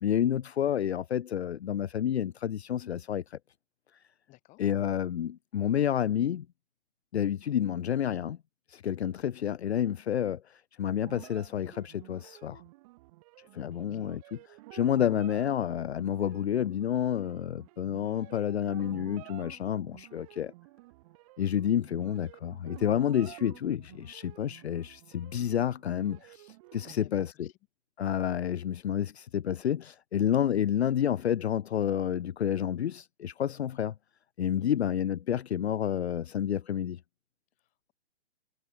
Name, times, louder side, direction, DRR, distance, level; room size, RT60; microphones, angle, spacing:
voice 1, 0.0-3.4 4.6-6.5 7.1-8.4 8.7-12.6 13.5-20.5 21.4-27.5 28.0-33.9 34.4-37.0, left 10 dB, 65° left, 0.7 m, -29 dB
voice 2, 4.3-4.6 13.7-14.1 26.9-27.5 34.6-34.8 37.6-37.9, left 21 dB, 20° left, 3.4 m, -58 dB
sound 1, 11.0-12.5 18.2-21.5, left 4 dB, 85° left, 7.5 m, -64 dB
sound 2, 11.1-26.9, right 22 dB, 30° right, 5.0 m, -51 dB
hypercardioid pair, 145°, 35 cm